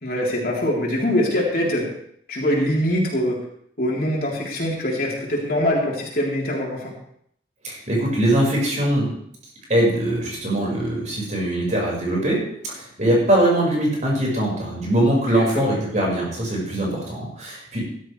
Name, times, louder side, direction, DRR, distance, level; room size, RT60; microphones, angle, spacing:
voice 1, 0.0-1.9 2.3-3.4 3.8-6.9 15.3-15.8, left 1 dB, 50° left, -3 dB, 3.7 m, -23 dB
voice 2, 7.6-9.1 9.7-18.0, right 1 dB, 40° right, -3 dB, 5.4 m, -22 dB
15.5 x 12.5 x 3.4 m, 0.69 s
head